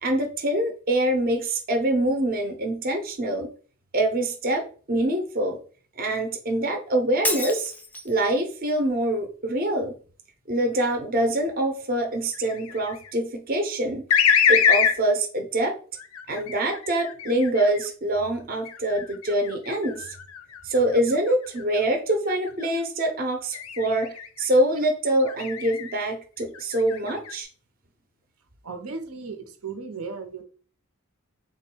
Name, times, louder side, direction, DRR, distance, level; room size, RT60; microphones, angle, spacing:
voice 1, 0.0-3.5 3.9-5.6 6.0-7.7 8.0-9.9 10.5-14.0 14.5-15.8 16.3-20.1 20.6-27.5, right 1 dB, 40° right, 3 dB, 0.6 m, -25 dB
Shatter, 7.2-8.2, left 1 dB, 10° left, 0.3 m, -29 dB
sound 1, 12.3-13.1 14.1-15.0 16.0-17.9 18.5-21.8 22.3-22.7 23.5-24.5 25.2-25.9 26.4-27.4, left 7 dB, 75° left, 0.5 m, -25 dB
voice 2, 28.6-30.4, right 4 dB, 90° right, 6 dB, 0.8 m, -35 dB
3.7 x 2.2 x 4.5 m, 0.41 s
head